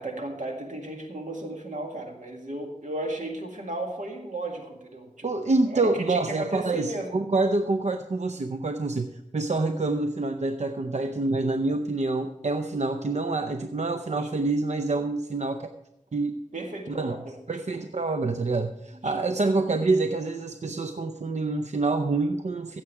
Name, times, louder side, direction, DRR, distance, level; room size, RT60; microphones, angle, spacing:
voice 1, 0.0-7.2 14.1-14.3 16.5-17.4 17.7-17.8 19.0-19.2, right 1 dB, 85° right, 2 dB, 2.0 m, -35 dB
voice 2, 5.2-15.7 16.1-16.3 16.9-17.2 17.5-22.8, right 3 dB, 65° right, 8 dB, 0.6 m, -27 dB
15.5 x 7.4 x 4.7 m, 0.86 s
wide cardioid pair, 50°, 13 cm